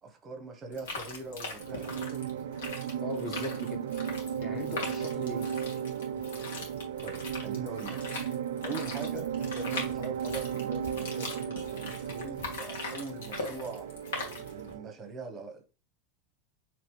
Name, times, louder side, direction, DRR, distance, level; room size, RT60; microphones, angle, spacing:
voice 1, 0.0-2.5 7.0-8.0 8.6-13.9 14.5-15.6, right 3 dB, 25° right, 0.9 m, -42 dB
sound 1, 0.7-14.7, left 3 dB, 90° left, 1.5 m, -41 dB
sound 2, 1.6-14.9, right 8 dB, 90° right, 0.3 m, -35 dB
voice 2, 3.0-3.9 4.4-5.6, left 3 dB, 20° left, 0.5 m, -40 dB
4.9 x 3.1 x 3.1 m
supercardioid pair, 150°, 0 cm